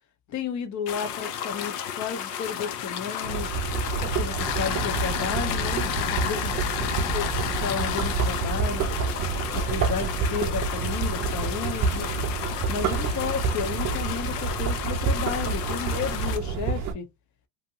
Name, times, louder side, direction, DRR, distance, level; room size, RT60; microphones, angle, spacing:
voice 1, 0.3-3.6 4.0-6.9 7.1-7.3 7.6-8.9 9.5-12.1 12.7-17.1, left 7 dB, 35° left, 0.7 m, -33 dB
sound 1, 0.9-16.4, left 9 dB, 75° left, 0.7 m, -32 dB
sound 2, 3.2-16.9, right 5 dB, 35° right, 0.5 m, -28 dB
2.7 x 2.1 x 2.7 m
hypercardioid pair, 90°, 49 cm